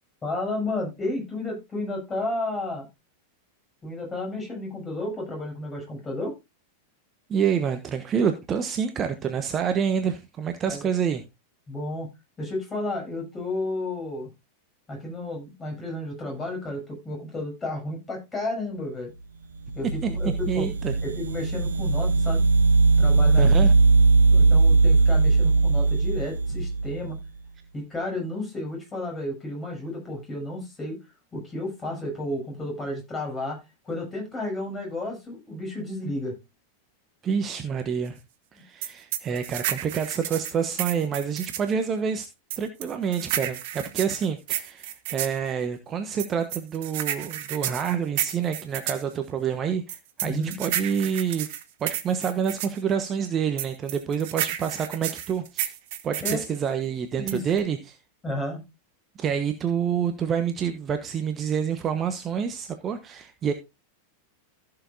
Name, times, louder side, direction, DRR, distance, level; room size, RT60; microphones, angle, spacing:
voice 1, 0.2-2.9 3.8-6.3 10.7-10.9 11.7-12.1 12.4-14.3 14.9-19.1 19.7-20.7 21.0-22.4 23.0-23.7 24.3-27.2 27.7-31.0 31.3-36.4 50.2-50.5 56.2-56.4 57.2-57.4 58.2-58.6, left 1 dB, 15° left, 7.3 m, -32 dB
voice 2, 7.3-11.2 20.0-20.1 20.5-20.9 23.4-23.7 37.2-38.2 38.5-42.3 42.6-51.5 51.8-55.7 56.0-58.0 59.2-63.5, right 7 dB, 25° right, 1.1 m, -27 dB
sound 1, 19.7-27.2, right 3 dB, 70° right, 0.8 m, -20 dB
sound 2, 38.8-41.7 42.5-45.4 46.2-49.0 49.9-52.8 53.6-56.5 57.3-57.6, right 12 dB, 50° right, 1.2 m, -31 dB
15.0 x 7.0 x 2.6 m
figure-of-eight pair, 90°, 0 cm